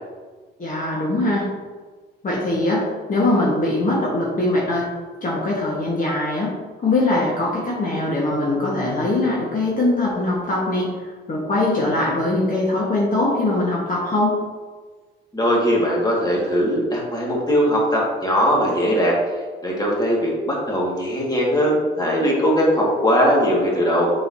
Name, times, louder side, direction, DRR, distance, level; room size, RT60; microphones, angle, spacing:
voice 1, 0.6-1.5 2.2-4.9 5.2-6.5 6.8-14.4, left 2 dB, 45° left, -4 dB, 1.5 m, -22 dB
voice 2, 15.3-19.2 19.6-24.1, equal, 20° left, -3 dB, 1.9 m, -20 dB
6.9 x 5.6 x 2.8 m, 1.4 s
cardioid pair, 90°, 20 cm